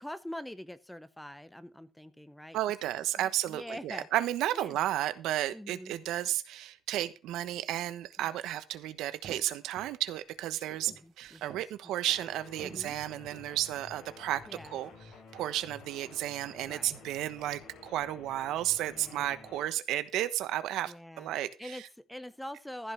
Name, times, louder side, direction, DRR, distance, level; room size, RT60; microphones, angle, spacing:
voice 1, 0.0-2.9 3.2-4.1 4.5-4.8 5.5-5.9 8.2-8.3 10.9-11.5 12.6-13.0 14.5-14.8 16.6-17.0 18.9-19.4 20.9-22.9, left 1 dB, 5° left, 15 dB, 1.0 m, -44 dB
voice 2, 2.5-14.9 15.3-21.8, right 13 dB, 90° right, 14 dB, 1.1 m, -33 dB
sound 1, 9.2-9.9 10.3-11.7 12.2-12.3 12.6-13.5 14.2-14.9 15.3-15.6, right 7 dB, 75° right, 3.4 m, -52 dB
sound 2, 12.1-19.7, left 4 dB, 70° left, 3.8 m, -52 dB
15.0 x 5.4 x 6.0 m, 0.32 s
cardioid pair, 90°, 0 cm